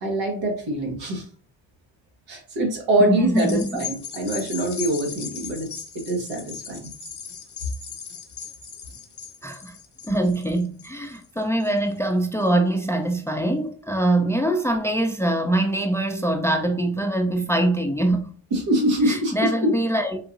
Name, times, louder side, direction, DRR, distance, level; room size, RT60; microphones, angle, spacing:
voice 1, 0.0-1.2 2.3-5.7 6.1-6.9 18.5-19.7, right 1 dB, 75° right, 1.2 m, -24 dB
voice 2, 3.0-3.8 9.4-9.7 10.0-18.3 19.0-20.2, right 1 dB, 5° left, 0.5 m, -23 dB
sound 1, 3.3-12.0 12.5-12.6, left 7 dB, 40° left, 0.9 m, -38 dB
3.8 x 2.7 x 2.5 m
supercardioid pair, 45°, 45 cm